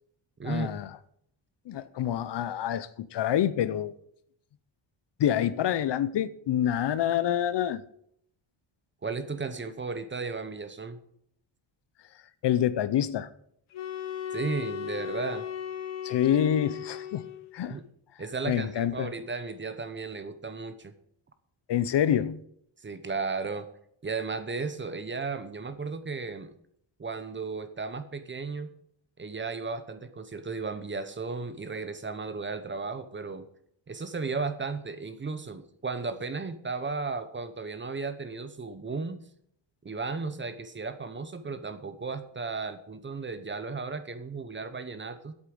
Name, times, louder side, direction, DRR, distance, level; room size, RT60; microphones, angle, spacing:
voice 1, 0.4-0.9 1.7-3.9 5.2-7.8 12.4-13.3 16.0-17.3 17.5-17.8 18.5-19.1 21.7-22.4, left 10 dB, 60° left, 0.7 m, -27 dB
voice 2, 9.0-11.0 14.3-15.5 17.7-17.8 18.2-20.9 22.8-23.7 24.0-26.5 27.0-28.7 29.2-33.4 33.9-39.2 39.8-45.3, right 4 dB, 25° right, 0.9 m, -35 dB
sound 1, 13.7-17.6, left 9 dB, 80° left, 1.4 m, -36 dB
8.3 x 8.3 x 7.7 m
wide cardioid pair, 150°, 49 cm